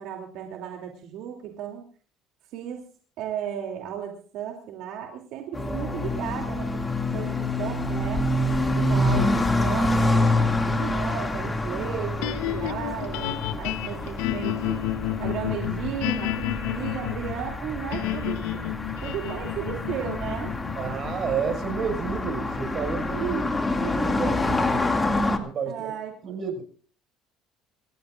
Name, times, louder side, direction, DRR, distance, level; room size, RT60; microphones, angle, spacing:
voice 1, 0.0-1.8 2.5-2.8 3.2-6.8 7.1-8.3 8.8-14.8 15.2-18.8 19.0-20.5 23.2-23.6 25.7-26.3, right 9 dB, 70° right, 2 dB, 2.9 m, -35 dB
sound 1, 5.5-25.4, left 2 dB, 15° left, 2.3 m, -27 dB
sound 2, 12.2-24.5, left 15 dB, 90° left, 1.0 m, -32 dB
voice 2, 20.8-24.9 25.4-25.9 26.2-26.6, right 6 dB, 40° right, 5 dB, 5.7 m, -31 dB
28.0 x 14.5 x 2.5 m, 0.42 s
cardioid pair, 115°, 0 cm